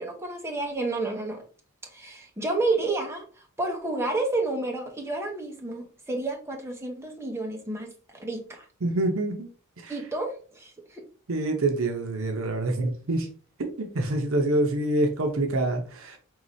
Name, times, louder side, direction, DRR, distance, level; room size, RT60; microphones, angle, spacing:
voice 1, 0.0-1.4 1.9-3.3 3.6-8.7 9.9-11.1, right 2 dB, 10° right, 1 dB, 0.9 m, -30 dB
voice 2, 8.8-9.5 9.8-9.9 11.3-13.3 13.8-16.2, right 2 dB, 65° right, 4 dB, 0.7 m, -26 dB
4.7 x 3.1 x 2.7 m, 0.39 s
head